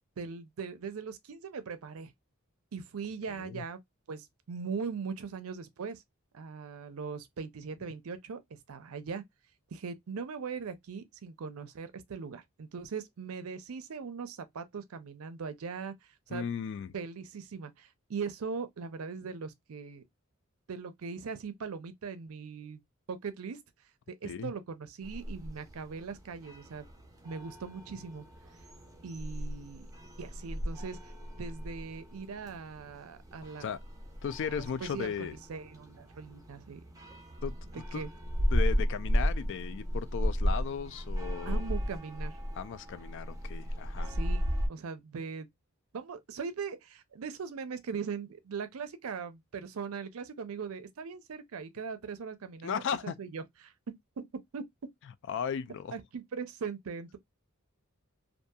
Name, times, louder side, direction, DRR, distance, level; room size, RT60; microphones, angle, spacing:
voice 1, 0.2-2.1 2.7-3.8 4.1-6.0 6.3-9.2 9.7-16.4 16.9-20.0 20.7-22.8 23.1-23.6 24.2-26.9 27.2-28.2 29.0-29.9 30.2-31.0 31.4-33.7 34.5-36.8 37.9-38.1 41.5-42.4 44.1-44.4 44.7-45.5 45.9-54.2 54.5-54.6 55.9-57.2, right 5 dB, 80° right, 0.5 m, -40 dB
voice 2, 3.3-3.6 16.3-16.9 24.2-24.5 33.6-33.8 34.2-35.4 37.4-38.0 38.5-41.7 42.5-44.1 52.6-53.2 55.3-55.9, left 7 dB, 60° left, 0.3 m, -36 dB
sound 1, 25.0-44.7, equal, 15° right, 0.8 m, -35 dB
2.7 x 2.5 x 2.2 m
head